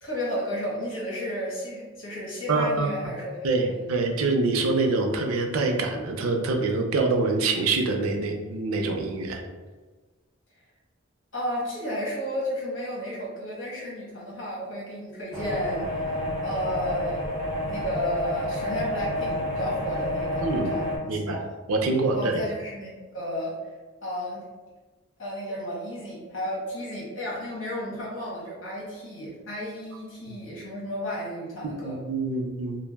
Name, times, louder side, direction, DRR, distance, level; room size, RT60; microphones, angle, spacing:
voice 1, 0.0-4.0 11.3-16.2 16.4-17.3 17.7-21.5 22.0-23.6 24.0-24.4 25.2-32.0, equal, 65° left, -6 dB, 1.1 m, -33 dB
voice 2, 2.5-2.9 3.4-9.4 20.4-20.7 21.1-21.4 21.7-22.4 31.8-32.8, right 3 dB, 90° right, 3 dB, 0.4 m, -25 dB
sound 1, 15.3-21.0, left 1 dB, 30° left, 1.2 m, -29 dB
2.5 x 2.0 x 3.3 m, 1.3 s
head